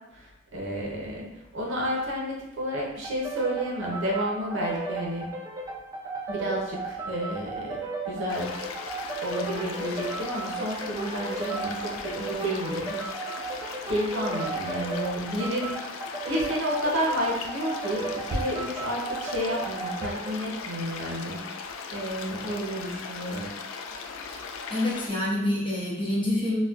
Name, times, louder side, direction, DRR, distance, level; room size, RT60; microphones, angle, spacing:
voice 1, 0.1-5.3 6.3-7.8 8.0-8.6 9.2-13.0 13.8-15.7 16.3-23.5, equal, 65° right, -2 dB, 0.7 m, -31 dB
sound 1, 3.0-20.5, right 3 dB, 15° right, 0.3 m, -35 dB
sound 2, 8.3-25.1, left 5 dB, 80° left, 0.3 m, -38 dB
voice 2, 24.7-26.6, left 1 dB, 25° left, -6 dB, 0.8 m, -27 dB
4.0 x 2.2 x 2.4 m, 0.96 s
head